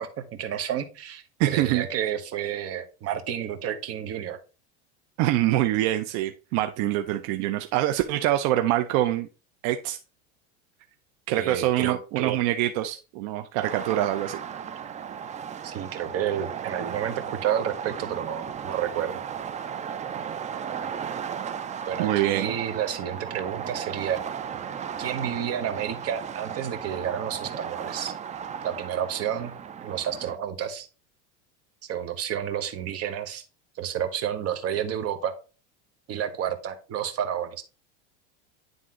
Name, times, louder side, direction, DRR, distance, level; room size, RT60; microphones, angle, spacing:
voice 1, 0.0-4.4 11.3-12.4 15.6-19.2 21.9-24.2 25.0-28.1 28.6-29.5 29.8-30.9 31.9-33.4 33.8-35.3 36.1-37.6, right 9 dB, 45° right, 7 dB, 1.3 m, -30 dB
voice 2, 1.4-1.9 5.2-9.3 9.6-10.0 11.3-14.4 22.0-22.5, right 14 dB, 60° right, 7 dB, 0.7 m, -25 dB
sound 1, 13.6-30.4, right 8 dB, 20° right, 0.5 m, -35 dB
9.6 x 3.7 x 3.7 m, 0.33 s
supercardioid pair, 115°, 35 cm